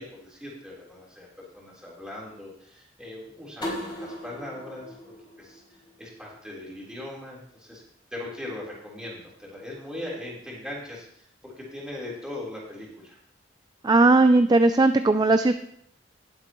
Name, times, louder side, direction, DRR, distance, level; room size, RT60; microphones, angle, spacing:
voice 1, 0.0-5.1 5.4-5.6 6.0-7.8 8.1-13.2, left 1 dB, 5° right, -5 dB, 3.8 m, -40 dB
sound 1, 3.6-6.4, equal, 25° left, 4.8 m, -38 dB
voice 2, 13.8-15.5, right 2 dB, 20° right, 9 dB, 0.4 m, -18 dB
19.0 x 8.0 x 3.1 m, 0.69 s
head